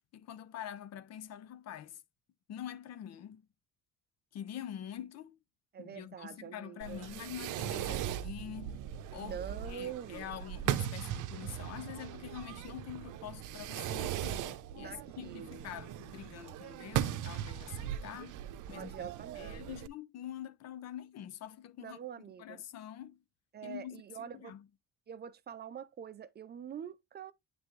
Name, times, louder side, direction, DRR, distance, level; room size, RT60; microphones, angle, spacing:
voice 1, 0.1-2.0 2.5-3.4 4.3-5.4 5.8-8.8 9.1-9.4 9.7-18.4 18.7-19.1 19.4-22.0 22.4-23.2 23.6-24.7, left 10 dB, 55° left, 0.7 m, -45 dB
voice 2, 5.7-7.1 9.2-10.3 14.8-15.6 18.7-19.8 21.8-22.6 23.5-24.5 25.1-27.3, right 8 dB, 35° right, 0.5 m, -45 dB
Fireworks, 6.8-19.9, right 11 dB, 75° right, 0.7 m, -39 dB
9.5 x 3.4 x 3.2 m
cardioid pair, 160°, 31 cm